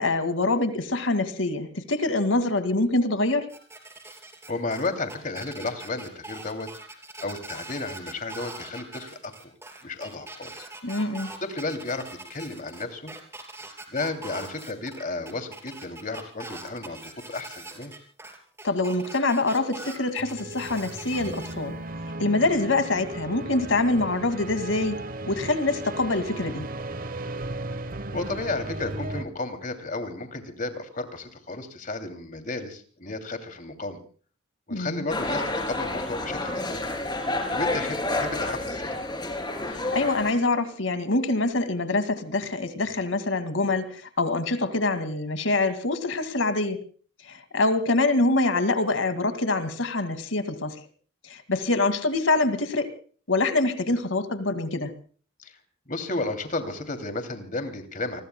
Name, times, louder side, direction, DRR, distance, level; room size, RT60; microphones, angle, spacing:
voice 1, 0.0-3.5 10.8-11.3 18.6-21.8 22.2-25.0 25.3-26.7 34.7-35.1 39.7-46.8 47.2-50.8 51.2-52.9 53.3-54.9, left 2 dB, 85° left, 2.2 m, -25 dB
sound 1, 3.5-21.5, right 2 dB, 15° right, 3.1 m, -42 dB
voice 2, 4.5-6.7 7.2-9.5 9.8-10.7 11.4-13.1 13.9-17.9 28.1-34.0 34.7-36.8 37.5-39.0 55.4-55.6 55.9-58.2, left 2 dB, 40° left, 2.8 m, -33 dB
sound 2, 20.2-29.2, right 2 dB, 45° right, 1.1 m, -36 dB
sound 3, 35.1-40.3, left 2 dB, 20° left, 3.4 m, -29 dB
29.0 x 21.0 x 2.3 m
head